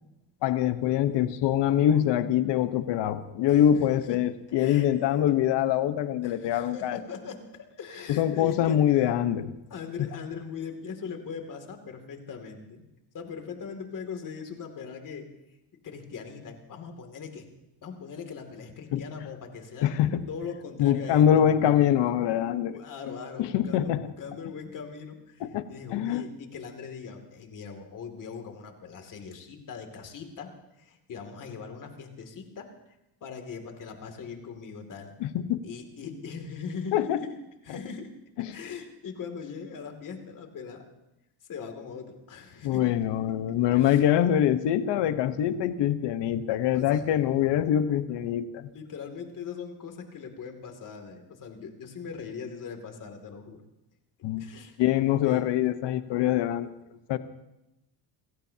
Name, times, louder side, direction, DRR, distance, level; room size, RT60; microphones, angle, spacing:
voice 1, 0.4-7.0 8.1-9.5 10.0-10.1 18.9-19.0 19.8-20.2 20.8-22.8 23.4-24.1 25.4-25.6 25.9-26.2 35.2-35.6 36.9-37.2 38.4-38.6 42.6-48.7 54.2-54.4 54.8-56.7 57.1-57.2, left 10 dB, 60° left, 11 dB, 1.1 m, -24 dB
voice 2, 4.6-5.2 6.2-9.2 9.7-12.8 13.1-15.3 15.8-17.5 17.8-19.9 20.3-21.4 22.7-30.5 30.8-32.7 33.2-35.1 35.6-37.3 37.6-38.1 38.5-40.8 41.5-42.9 43.7-44.0 46.7-47.0 48.7-53.6 54.4-54.8 55.2-55.4, left 6 dB, 40° left, 4 dB, 2.7 m, -40 dB
29.5 x 17.0 x 2.9 m, 0.92 s
cardioid pair, 140°, 46 cm